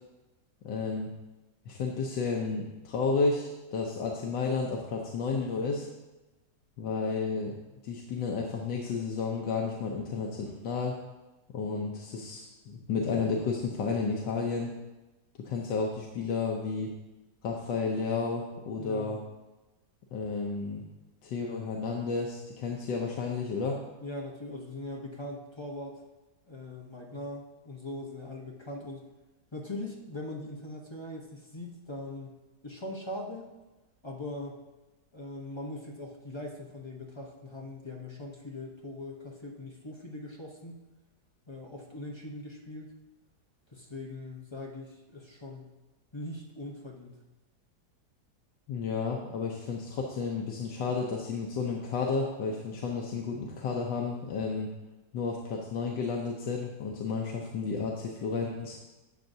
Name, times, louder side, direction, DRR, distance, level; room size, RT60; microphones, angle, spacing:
voice 1, 0.6-1.1 1.7-5.9 6.8-7.5 7.8-10.9 11.5-14.7 15.4-16.9 17.4-19.2 20.1-20.8 21.2-23.8 48.7-54.7 55.1-58.8, left 4 dB, 85° left, 0 dB, 1.5 m, -32 dB
voice 2, 18.8-19.2 24.0-26.0 26.5-29.0 29.5-32.3 32.6-33.5 34.0-34.6 35.1-40.8 41.5-42.9 43.7-45.7 46.1-47.2, left 1 dB, 25° left, -1 dB, 0.7 m, -41 dB
11.5 x 7.6 x 2.7 m, 1.1 s
omnidirectional pair, 1.9 m